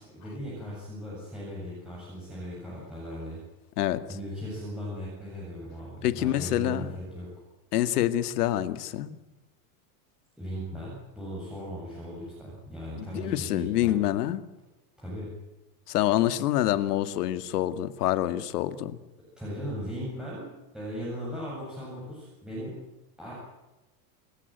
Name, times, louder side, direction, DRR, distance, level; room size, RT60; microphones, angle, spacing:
voice 1, 0.0-3.4 4.1-7.3 10.4-14.0 15.0-15.3 19.4-20.5 20.7-22.7 23.2-23.3, equal, ahead, -7 dB, 7.9 m, -38 dB
voice 2, 6.0-6.9 7.7-9.2 13.0-14.4 15.9-19.0, left 13 dB, 80° left, 12 dB, 2.1 m, -26 dB
29.0 x 15.5 x 9.3 m, 1.0 s
supercardioid pair, 170°, 46 cm